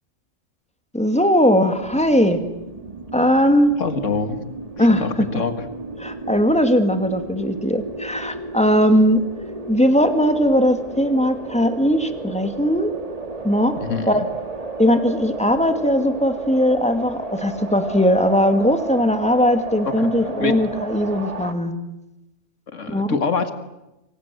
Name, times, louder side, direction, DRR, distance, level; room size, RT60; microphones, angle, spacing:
voice 1, 0.9-2.4 3.1-3.8 4.8-5.3 6.0-9.2 9.7-12.9 13.4-13.8 14.1-14.3 14.8-21.7 22.9-23.2, equal, 5° left, 7 dB, 2.4 m, -19 dB
sound 1, 1.7-21.5, right 2 dB, 30° right, 1.9 m, -33 dB
voice 2, 3.8-4.4 4.8-5.5 13.8-14.3 19.9-20.1 20.4-20.6 22.7-23.5, left 5 dB, 75° left, 9 dB, 2.2 m, -25 dB
28.0 x 24.5 x 7.9 m, 0.96 s
omnidirectional pair, 1.3 m